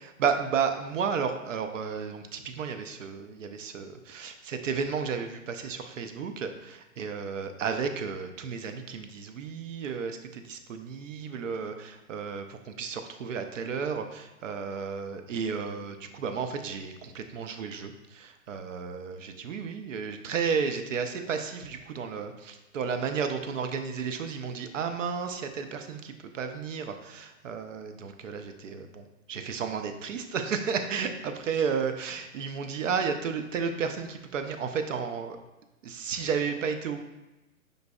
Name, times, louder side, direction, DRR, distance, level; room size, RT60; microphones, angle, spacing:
voice 1, 0.0-35.4 35.8-37.0, right 6 dB, 60° right, 7 dB, 0.6 m, -33 dB
5.2 x 3.9 x 2.3 m, 1.0 s
hypercardioid pair, 160°, 43 cm